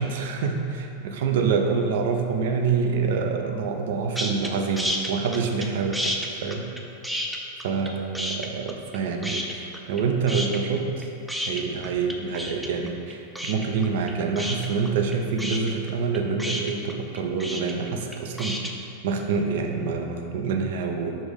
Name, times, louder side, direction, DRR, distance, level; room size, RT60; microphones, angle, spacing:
voice 1, 0.0-6.1 6.4-6.7 7.6-11.1 11.5-18.6 19.0-21.2, right 5 dB, 55° right, 3 dB, 0.6 m, -26 dB
sound 1, 4.1-4.5 4.8-5.7 5.9-9.0 9.2-10.0 10.3-18.7, equal, ahead, 0.5 m, -30 dB
5.4 x 3.5 x 4.9 m, 2.7 s
figure-of-eight pair, 90°, 0 cm